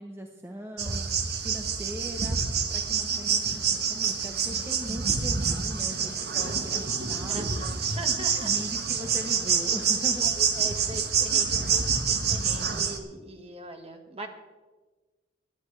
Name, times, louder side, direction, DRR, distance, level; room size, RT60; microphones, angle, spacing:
voice 1, 0.0-3.4 3.7-7.5 8.1-10.3, equal, 15° right, 2 dB, 1.0 m, -40 dB
sound 1, 0.8-13.0, right 6 dB, 60° right, 1.3 m, -27 dB
voice 2, 7.3-8.5 10.2-14.3, right 2 dB, 35° right, 4 dB, 1.6 m, -41 dB
22.0 x 10.5 x 3.3 m, 1.3 s
head